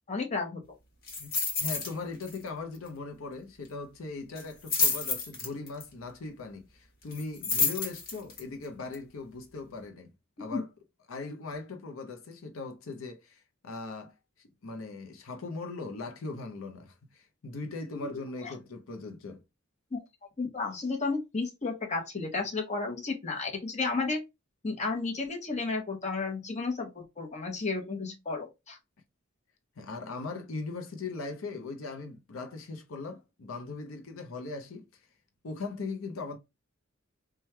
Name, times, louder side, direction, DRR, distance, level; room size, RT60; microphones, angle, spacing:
voice 1, 0.1-0.6 10.5-10.6 18.0-18.1 18.4-18.5 19.9-20.0 20.4-24.2 24.6-28.8, left 3 dB, 35° left, 0.9 m, -32 dB
sound 1, 1.1-1.9 2.2-2.5 2.7-2.8 4.4-5.8 7.1-8.4 8.9-9.0, left 4 dB, 50° left, 1.3 m, -29 dB
voice 2, 1.6-10.1 10.4-10.7 11.1-14.2 14.6-19.4 29.8-34.9 35.4-36.4, left 3 dB, 80° left, 0.6 m, -39 dB
3.2 x 2.3 x 4.3 m
head